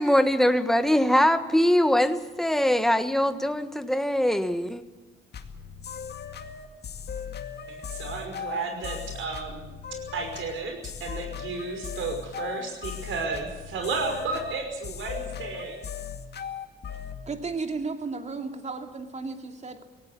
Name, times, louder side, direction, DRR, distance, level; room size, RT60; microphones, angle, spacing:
voice 1, 0.0-4.8, equal, ahead, 9 dB, 1.4 m, -22 dB
sound 1, 5.3-17.2, left 7 dB, 55° left, 2.1 m, -38 dB
voice 2, 7.7-9.6 10.1-15.8, right 4 dB, 80° right, 5 dB, 5.5 m, -33 dB
voice 3, 17.3-19.8, right 4 dB, 35° right, 5 dB, 2.6 m, -34 dB
18.0 x 17.5 x 9.7 m, 1.2 s
cardioid pair, 90°, 20 cm